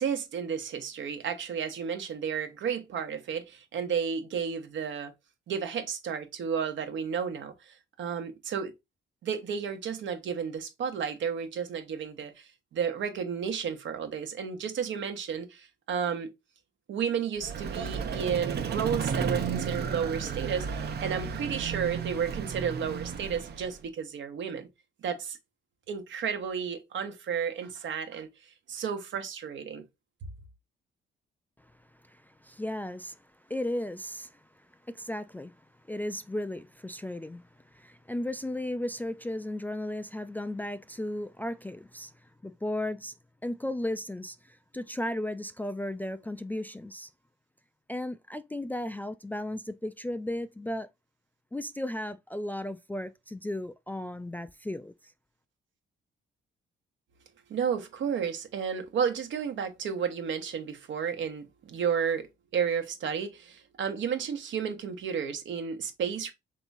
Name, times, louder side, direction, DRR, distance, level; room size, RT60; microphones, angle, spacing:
voice 1, 0.0-5.1 5.5-8.7 9.2-16.3 16.9-24.7 25.0-25.4 25.9-29.8 57.5-62.3 62.5-66.3, right 7 dB, 70° right, 1.1 m, -32 dB
Vehicle, 17.4-23.8, right 6 dB, 55° right, 0.8 m, -33 dB
voice 2, 32.0-33.2 33.5-35.5 35.9-42.1 42.4-43.1 43.4-47.1 47.9-50.9 51.5-54.9, left 1 dB, 10° left, 0.3 m, -35 dB
3.5 x 3.0 x 4.0 m
cardioid pair, 90°, 20 cm